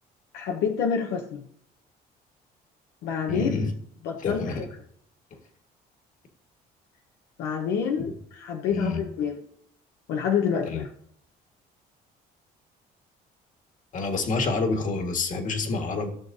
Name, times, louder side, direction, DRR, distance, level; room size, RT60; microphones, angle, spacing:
voice 1, 0.3-1.4 3.0-3.7 4.0-4.5 7.4-9.4 10.1-10.9, left 7 dB, 90° left, 2 dB, 0.9 m, -27 dB
voice 2, 3.3-3.7 4.2-4.6 8.0-8.1 8.7-9.1 10.7-10.8 13.9-16.1, left 3 dB, 50° left, 4 dB, 1.6 m, -28 dB
15.5 x 6.4 x 2.7 m, 0.66 s
cardioid pair, 110°, 17 cm